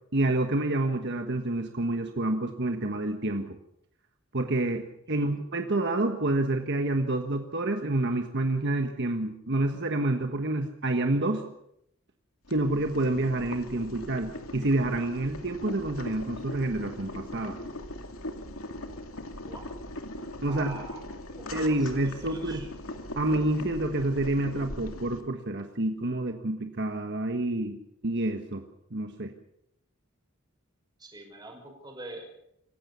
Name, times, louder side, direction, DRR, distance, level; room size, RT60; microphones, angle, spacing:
voice 1, 0.1-3.5 4.3-11.4 12.5-17.6 20.4-20.8 21.5-22.7 23.1-27.8 28.0-28.6 28.9-29.3, right 2 dB, 55° right, 5 dB, 1.4 m, -28 dB
voice 2, 5.1-5.4 19.5-19.7 20.5-21.0 21.3-22.7 31.0-32.3, right 2 dB, 20° right, 3 dB, 5.7 m, -45 dB
Boiling, 12.4-25.2, left 1 dB, 80° left, 2.6 m, -40 dB
27.0 x 15.5 x 6.9 m, 0.77 s
head